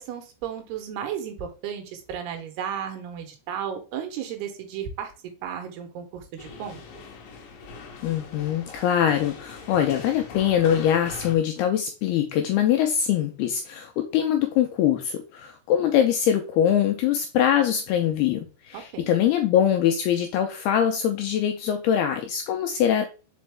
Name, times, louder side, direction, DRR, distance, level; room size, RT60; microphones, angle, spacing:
voice 1, 0.0-5.1 5.4-6.8 18.7-19.1, right 8 dB, 75° right, 5 dB, 2.8 m, -34 dB
sound 1, 6.4-11.4, left 5 dB, 70° left, 2.2 m, -42 dB
voice 2, 8.0-23.0, left 9 dB, 85° left, 6 dB, 2.3 m, -23 dB
5.3 x 5.1 x 3.4 m, 0.33 s
omnidirectional pair, 5.1 m